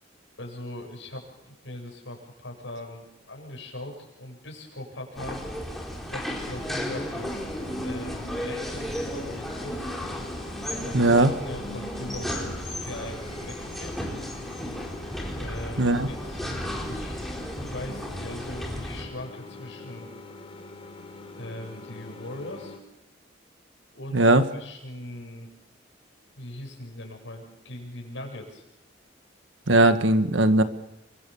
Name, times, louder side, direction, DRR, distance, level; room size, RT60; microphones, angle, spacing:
voice 1, 0.4-5.5 6.1-7.4 7.8-9.9 10.8-14.1 15.4-17.2 17.5-20.1 21.4-22.7 23.9-25.5 26.3-28.6, left 1 dB, 75° left, 1 dB, 7.6 m, -40 dB
sound 1, 5.1-19.0, equal, ahead, 4.3 m, -34 dB
sound 2, 6.4-22.8, left 3 dB, 30° left, 4.2 m, -44 dB
voice 2, 10.9-11.3 15.8-16.1 24.1-24.4 29.7-30.6, right 2 dB, 85° right, 9 dB, 1.6 m, -19 dB
29.5 x 23.5 x 7.1 m, 0.92 s
head